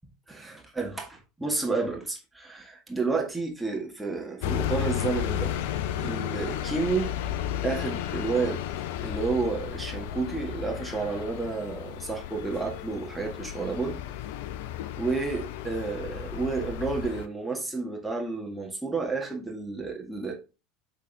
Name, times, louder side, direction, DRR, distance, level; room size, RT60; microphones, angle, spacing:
voice 1, 0.3-5.5 5.9-7.1 7.6-8.6 9.0-14.0 15.0-20.3, right 4 dB, 5° right, 0 dB, 1.7 m, -31 dB
sound 1, 4.4-17.3, left 11 dB, 60° left, 0.4 m, -33 dB
8.2 x 3.7 x 3.4 m, 0.30 s
figure-of-eight pair, 70°, 0 cm